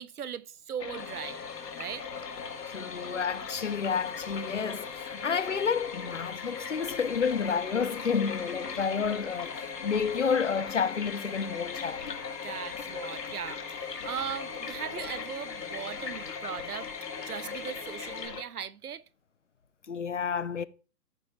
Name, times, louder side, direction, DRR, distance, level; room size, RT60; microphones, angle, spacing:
voice 1, 0.0-1.4 1.8-2.1 12.4-16.9 17.3-19.0, right 8 dB, 65° right, 0.5 m, -38 dB
sound 1, 0.8-18.4, left 6 dB, 70° left, 1.8 m, -39 dB
sound 2, 1.0-18.3, left 5 dB, 15° left, 2.5 m, -46 dB
sound 3, 1.8-14.7, left 5 dB, 35° left, 2.7 m, -52 dB
voice 2, 2.7-9.5 9.8-12.2 19.9-20.7, left 6 dB, 50° left, 0.4 m, -30 dB
14.5 x 5.1 x 3.0 m
hypercardioid pair, 175°, 50 cm